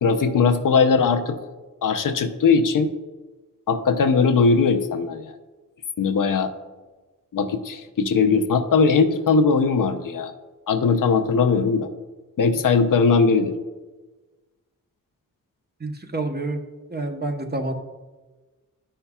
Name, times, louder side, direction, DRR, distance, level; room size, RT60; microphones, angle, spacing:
voice 1, 0.0-1.4 1.8-2.9 3.7-5.3 6.0-6.5 7.3-10.3 10.7-11.9 12.4-13.5, left 5 dB, 70° left, 7 dB, 0.7 m, -19 dB
voice 2, 15.8-16.6 16.9-17.7, right 2 dB, 30° right, 4 dB, 1.0 m, -28 dB
11.5 x 5.6 x 2.3 m, 1.2 s
cardioid pair, 60°, 34 cm